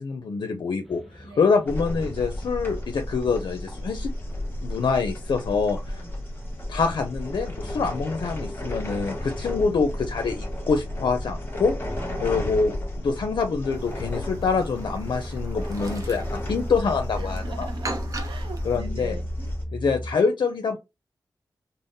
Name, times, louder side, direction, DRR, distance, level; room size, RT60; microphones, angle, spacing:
voice 1, 0.0-4.1 4.6-6.0 6.7-11.7 12.2-17.7 18.6-19.2 19.7-20.8, left 5 dB, 75° left, 0.5 m, -25 dB
sound 1, 0.8-20.1, equal, ahead, 0.7 m, -40 dB
sound 2, 1.7-19.6, left 1 dB, 30° left, 1.3 m, -33 dB
voice 2, 12.0-12.6 17.2-19.5, right 2 dB, 80° right, 0.8 m, -41 dB
Chirp tweet, 13.7-18.8, right 2 dB, 45° right, 0.6 m, -40 dB
3.5 x 2.0 x 2.6 m
wide cardioid pair, 75°, 8 cm